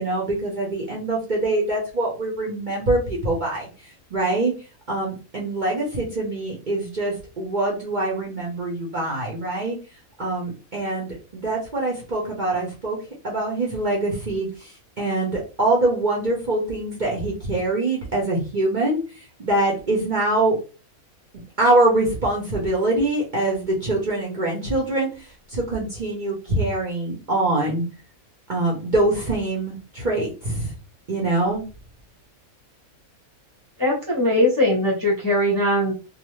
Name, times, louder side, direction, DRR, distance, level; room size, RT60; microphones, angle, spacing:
voice 1, 0.0-3.7 4.1-4.5 4.9-9.8 10.2-13.0 13.2-20.5 21.6-27.8 28.5-30.7 31.1-31.6, right 2 dB, 40° right, -3 dB, 0.7 m, -24 dB
voice 2, 33.8-35.9, left 1 dB, 20° left, -4 dB, 0.5 m, -20 dB
2.5 x 2.4 x 3.0 m, 0.33 s
omnidirectional pair, 1.5 m